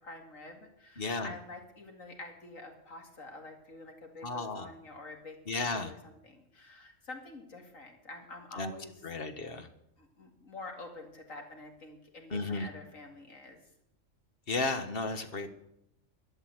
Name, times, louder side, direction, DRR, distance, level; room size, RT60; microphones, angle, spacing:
voice 1, 0.0-9.1 10.0-13.6, left 2 dB, 85° left, 3 dB, 2.8 m, -48 dB
voice 2, 1.0-1.3 4.2-4.7 5.5-5.9 8.6-8.7 9.0-9.7 12.3-12.7 14.5-15.5, left 3 dB, 45° left, 8 dB, 1.5 m, -33 dB
12.5 x 11.0 x 7.9 m, 0.79 s
omnidirectional pair, 1.4 m